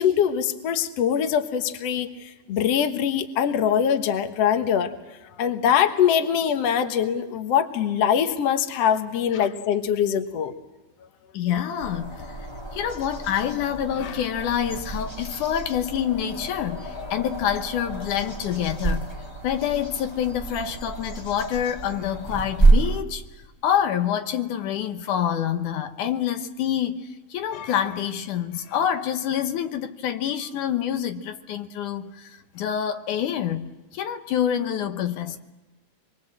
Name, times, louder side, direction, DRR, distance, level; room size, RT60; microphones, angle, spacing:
voice 1, 0.0-2.1 2.5-4.9 5.4-10.5, left 8 dB, 60° left, 2.3 m, -23 dB
voice 2, 11.3-19.1 19.4-23.2 23.6-35.4, left 9 dB, 85° left, 2.7 m, -27 dB
sound 1, 11.8-23.0, right 3 dB, 10° left, 1.6 m, -28 dB
27.0 x 22.5 x 7.6 m
omnidirectional pair, 3.5 m